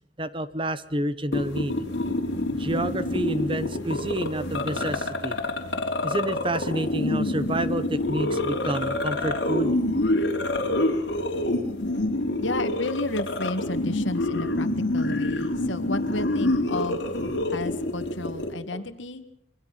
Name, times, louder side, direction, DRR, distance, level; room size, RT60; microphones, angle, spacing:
voice 1, 0.2-1.7 2.5-5.4 6.0-9.7 18.7-18.8, right 1 dB, 25° right, 13 dB, 1.1 m, -29 dB
sound 1, 1.3-18.5, left 1 dB, 60° left, 3.6 m, -27 dB
voice 2, 12.4-17.0 17.5-19.2, left 2 dB, 75° left, 10 dB, 1.9 m, -32 dB
27.5 x 23.0 x 5.9 m, 0.68 s
head